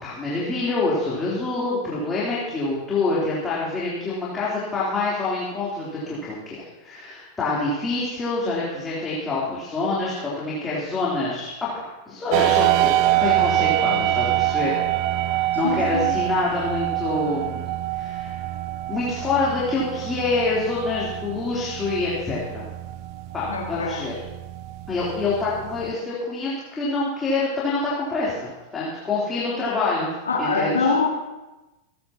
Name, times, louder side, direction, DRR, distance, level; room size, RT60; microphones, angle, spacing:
voice 1, 0.0-14.8 15.3-17.6 17.9-18.4 18.9-22.7 23.3-24.1 24.9-28.4 28.7-30.1 30.4-30.9, left 3 dB, 15° left, -8 dB, 3.4 m, -26 dB
sound 1, 12.3-25.9, right 14 dB, 45° right, 0.5 m, -25 dB
voice 2, 15.6-16.1 23.5-24.0 30.3-31.1, left 4 dB, 75° left, -1 dB, 1.8 m, -24 dB
27.0 x 10.0 x 2.9 m, 1.1 s
figure-of-eight pair, 90°, 0 cm